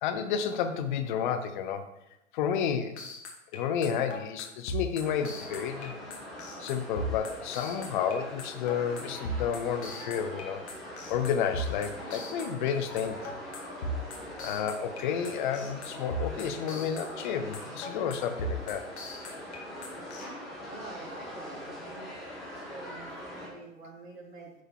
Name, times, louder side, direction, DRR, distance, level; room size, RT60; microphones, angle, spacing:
voice 1, 0.0-1.9 2.3-3.0 3.5-5.9 6.6-10.6 11.1-13.3 14.4-18.9, left 7 dB, 40° left, 8 dB, 1.0 m, -31 dB
sound 1, 3.0-20.2, right 1 dB, 60° left, 2.3 m, -37 dB
sound 2, 5.0-23.5, equal, ahead, 2.1 m, -43 dB
voice 2, 20.6-22.1 22.5-24.6, right 3 dB, 55° right, -3 dB, 2.4 m, -46 dB
10.5 x 5.2 x 4.5 m, 0.87 s
figure-of-eight pair, 110°, 38 cm